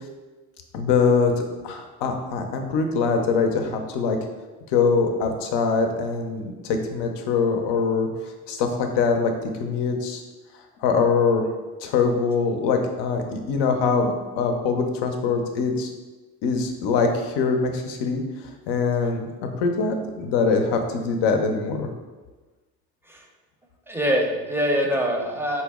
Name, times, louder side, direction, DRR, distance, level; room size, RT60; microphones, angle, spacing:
voice 1, 0.7-4.2 4.7-8.1 8.5-10.2 10.8-11.4 11.8-15.9 16.4-18.2 18.7-19.3 19.6-21.9, left 5 dB, 75° left, 4 dB, 0.6 m, -23 dB
voice 2, 23.9-25.6, equal, 5° right, 1 dB, 0.5 m, -24 dB
4.1 x 2.0 x 3.5 m, 1.3 s
supercardioid pair, 65°, 42 cm